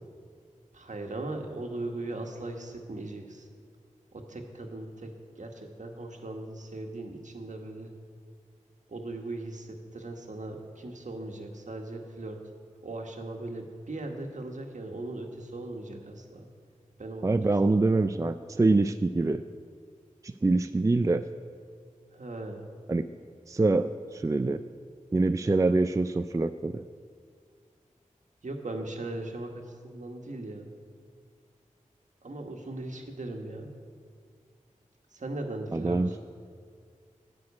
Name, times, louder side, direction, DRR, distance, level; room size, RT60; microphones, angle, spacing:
voice 1, 0.7-3.5 4.1-7.9 8.9-12.4 12.8-16.5 17.0-17.4 22.1-22.6 28.4-30.7 32.2-33.7 35.1-36.2, right 2 dB, 65° right, 3 dB, 1.5 m, -38 dB
voice 2, 17.2-19.4 20.2-21.2 22.9-23.1 23.5-24.6 25.1-26.8 35.7-36.1, right 2 dB, 25° right, 10 dB, 0.4 m, -25 dB
11.5 x 6.2 x 8.5 m, 2.1 s
cardioid pair, 45°, 14 cm